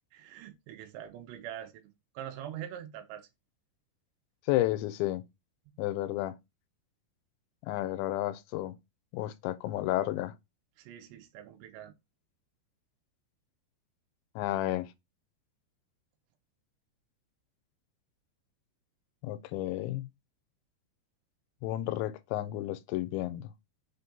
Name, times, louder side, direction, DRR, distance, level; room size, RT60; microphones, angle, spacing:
voice 1, 0.1-3.3 10.8-11.9, right 10 dB, 85° right, 2.9 m, -44 dB
voice 2, 4.5-5.2 5.8-6.4 7.6-8.8 9.1-10.4 14.4-14.9 19.2-20.1 21.6-23.5, left 15 dB, 90° left, 2.9 m, -32 dB
6.5 x 2.8 x 5.1 m
omnidirectional pair, 5.1 m